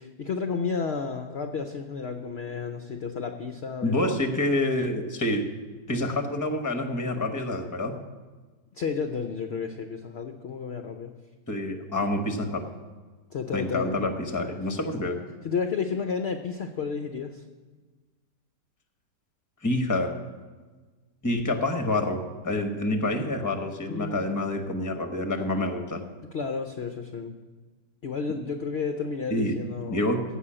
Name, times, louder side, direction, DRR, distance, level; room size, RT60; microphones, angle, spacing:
voice 1, 0.0-4.3 5.9-6.0 8.7-11.1 13.3-13.9 15.4-17.4 23.9-24.2 26.3-27.4 28.0-30.1, left 5 dB, 60° left, 6 dB, 0.7 m, -32 dB
voice 2, 3.8-5.5 5.9-7.9 11.5-12.6 13.5-15.2 19.6-20.1 21.2-26.0 29.3-30.2, left 1 dB, 15° left, 5 dB, 0.8 m, -27 dB
15.0 x 5.6 x 8.7 m, 1.4 s
omnidirectional pair, 1.8 m